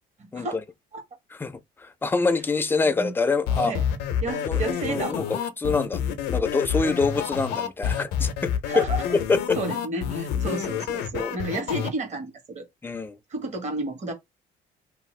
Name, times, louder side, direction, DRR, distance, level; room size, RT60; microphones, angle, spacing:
voice 1, 0.2-0.6 0.9-1.0 2.9-3.1 3.6-3.8 4.2-5.2 8.6-9.0 9.5-12.7 13.3-14.1, right 2 dB, 45° right, 1.3 m, -31 dB
voice 2, 1.3-3.7 4.5-4.6 4.9-6.0 6.3-8.8 9.1-9.6 11.1-11.3 12.8-13.2, left 4 dB, 10° left, 0.4 m, -25 dB
sound 1, 3.5-11.9, left 8 dB, 85° left, 0.6 m, -28 dB
2.7 x 2.3 x 3.1 m
cardioid pair, 110°, 17 cm